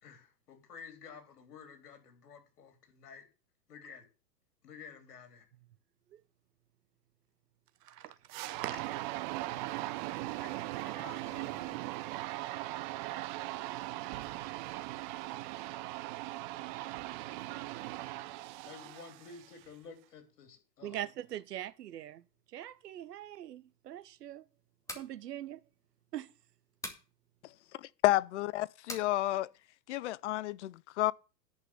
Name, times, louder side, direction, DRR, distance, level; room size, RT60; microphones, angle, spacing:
voice 1, 0.0-3.3 3.7-4.1 4.6-5.5 10.4-10.5 10.8-11.8 18.6-21.0, left 6 dB, 65° left, 3.7 m, -52 dB
voice 2, 7.8-8.2 8.5-8.7 13.9-14.1 20.8-24.4 24.9-25.6 26.1-26.3, right 12 dB, 70° right, 0.9 m, -42 dB
sound 1, 8.3-19.6, right 18 dB, 30° right, 0.6 m, -39 dB
sound 2, 24.7-25.1 26.8-27.1 28.9-29.1, left 1 dB, 5° left, 2.3 m, -42 dB
voice 3, 28.0-29.5 29.9-31.1, left 15 dB, 45° left, 0.5 m, -30 dB
10.5 x 5.5 x 7.9 m
hypercardioid pair, 110°, 49 cm